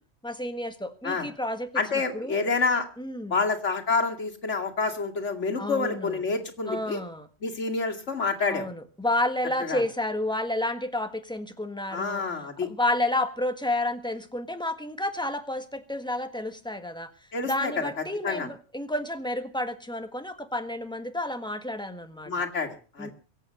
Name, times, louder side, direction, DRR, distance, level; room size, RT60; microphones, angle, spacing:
voice 1, 0.2-2.4 3.0-3.4 5.6-6.1 6.7-7.3 8.5-12.2 12.6-17.1 17.4-22.5 23.0-23.1, left 1 dB, 5° left, 7 dB, 1.6 m, -30 dB
voice 2, 1.7-2.9 3.3-7.0 7.4-8.7 9.6-9.8 11.9-12.7 17.3-17.7 18.2-18.5 22.3-23.1, left 4 dB, 90° left, 2 dB, 2.7 m, -28 dB
23.0 x 8.5 x 6.6 m, 0.38 s
omnidirectional pair, 1.2 m